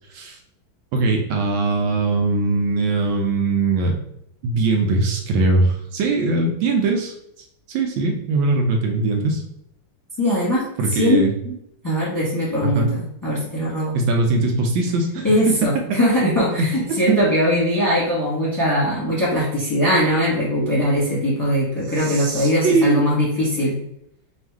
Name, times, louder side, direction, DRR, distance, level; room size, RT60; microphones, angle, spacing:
voice 1, 0.9-4.0 4.4-7.1 7.7-9.4 10.8-11.3 12.6-12.9 13.9-15.6 17.1-17.2 22.0-23.0, right 3 dB, 75° right, 2 dB, 1.3 m, -21 dB
voice 2, 10.2-10.6 10.9-11.5 11.8-14.0 15.1-23.8, equal, 15° left, -6 dB, 0.9 m, -20 dB
3.6 x 2.3 x 4.5 m, 0.74 s
omnidirectional pair, 2.3 m